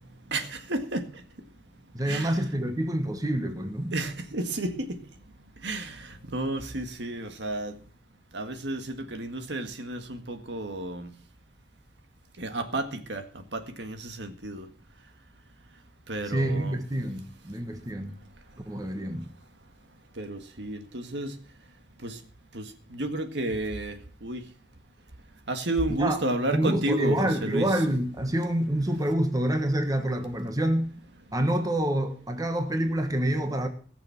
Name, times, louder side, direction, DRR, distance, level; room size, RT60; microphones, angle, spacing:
voice 1, 0.3-1.0 2.1-2.3 3.9-4.9 5.6-6.0 6.3-7.7 8.3-11.1 12.4-13.2 13.5-14.6 16.1-16.8 20.2-21.3 22.0-22.1 22.5-22.6 22.9-23.9 24.2-24.4 25.5-27.7, right 2 dB, 70° right, 1.8 m, -31 dB
voice 2, 1.9-3.9 16.3-18.2 18.7-19.3 26.0-26.2 26.5-30.9 31.3-33.7, right 1 dB, 20° right, 1.4 m, -27 dB
19.0 x 7.0 x 5.9 m
head